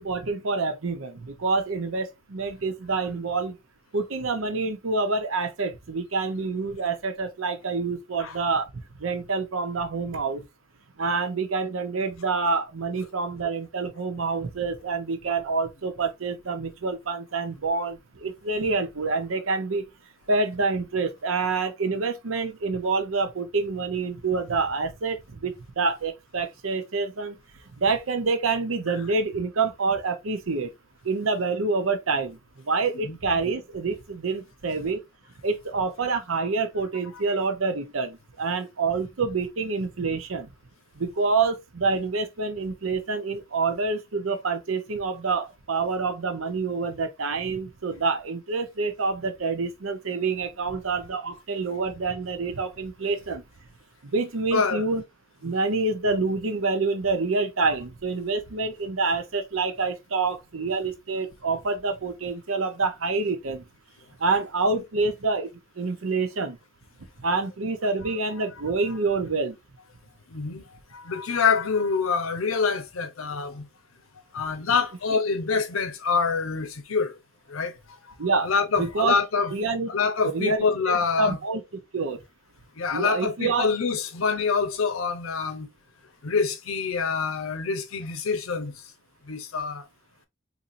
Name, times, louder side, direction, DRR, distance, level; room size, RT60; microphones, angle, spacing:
voice 1, 0.0-3.6 3.9-10.4 11.0-19.9 20.3-27.3 27.8-30.7 31.0-32.4 32.6-35.0 35.4-40.5 41.0-53.4 54.0-55.0 55.4-63.6 64.2-65.5 65.8-66.6 67.2-69.6 78.2-78.5 78.8-79.2 79.5-79.9 80.2-80.6 81.2-82.2 82.9-83.7, right 4 dB, 85° right, 0.7 m, -27 dB
voice 2, 54.5-54.8 70.3-70.7 70.9-73.7 74.3-77.2 77.5-77.7 78.1-78.2 78.4-79.5 79.9-81.4 82.8-85.7 86.2-88.8 89.3-89.8, left 5 dB, 90° left, 0.7 m, -26 dB
4.1 x 2.7 x 2.6 m
head